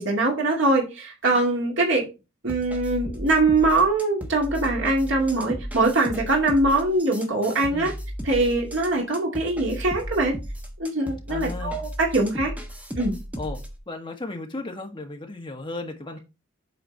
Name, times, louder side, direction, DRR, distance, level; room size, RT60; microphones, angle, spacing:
voice 1, 0.0-2.1 2.4-7.9 8.2-10.3 10.8-12.5 13.0-13.1, right 2 dB, 60° right, 2.2 m, -22 dB
sound 1, 2.5-13.8, equal, 5° right, 1.2 m, -35 dB
voice 2, 11.3-11.8 13.4-13.6 13.9-16.2, left 2 dB, 25° left, 1.6 m, -35 dB
8.1 x 4.4 x 4.4 m
head